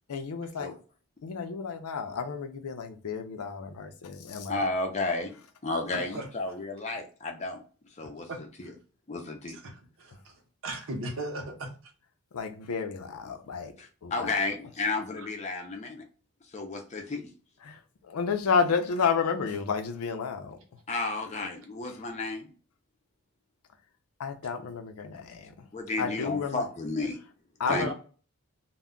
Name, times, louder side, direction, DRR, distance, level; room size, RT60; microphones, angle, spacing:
voice 1, 0.1-0.7 1.2-4.6 12.3-13.7 14.0-14.4 17.6-20.6 24.2-25.7 26.0-26.6 27.6-27.9, left 5 dB, 85° left, 0.5 m, -31 dB
voice 2, 4.5-7.6 8.0-8.3 8.6-8.7 9.1-9.6 13.8-16.0 16.5-17.3 20.9-22.5 25.7-27.2 27.7-27.9, left 3 dB, 30° left, 0.5 m, -32 dB
voice 3, 8.3-8.7 9.5-10.3 10.6-11.7 15.2-15.3 27.6-27.9, right 1 dB, 65° right, 0.7 m, -37 dB
2.2 x 2.1 x 3.6 m
head